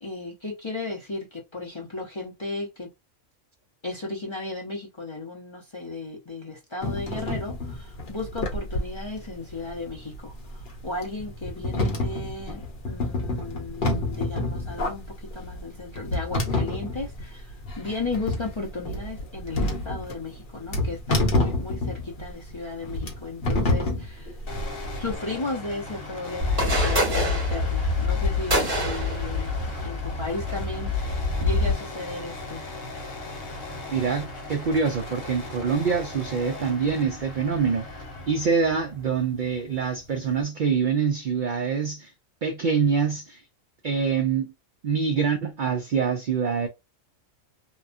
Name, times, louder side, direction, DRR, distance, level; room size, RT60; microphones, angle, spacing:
voice 1, 0.0-2.9 3.8-15.0 15.3-24.4 24.9-32.7, left 3 dB, 30° left, 0.5 m, -35 dB
sound 1, 6.8-25.1, left 2 dB, 50° left, 0.9 m, -29 dB
sound 2, 24.5-40.4, left 2 dB, 70° left, 1.3 m, -38 dB
sound 3, 26.4-31.7, left 2 dB, 45° right, 1.4 m, -25 dB
voice 2, 33.9-37.8 38.3-42.1 42.4-43.4 43.8-44.5 44.8-46.7, right 6 dB, 75° right, 0.4 m, -25 dB
2.9 x 2.2 x 2.5 m
omnidirectional pair, 1.4 m